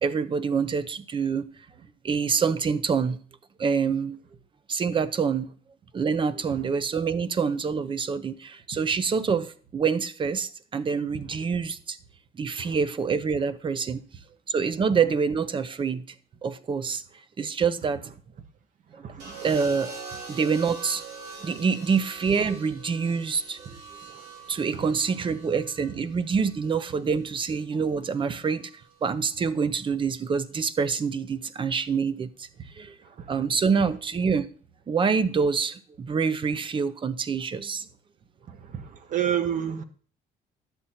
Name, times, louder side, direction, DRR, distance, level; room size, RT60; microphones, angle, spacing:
voice 1, 0.0-1.4 2.0-3.2 3.6-4.2 4.7-5.5 5.9-12.0 12.4-14.0 14.5-16.0 16.4-17.0 17.4-18.0 19.2-19.9 20.3-21.0 21.4-23.8 24.5-28.7 29.0-32.5 32.8-32.9 33.3-34.5 34.9-37.9, right 5 dB, 30° right, 0.6 m, -26 dB
voice 2, 19.0-19.4 24.7-24.8 33.2-33.4 38.5-39.8, right 9 dB, 50° right, 1.0 m, -30 dB
sound 1, 19.2-27.4 28.6-29.0, right 4 dB, 90° right, 3.4 m, -43 dB
10.5 x 7.6 x 4.2 m
cardioid pair, 115°, 17 cm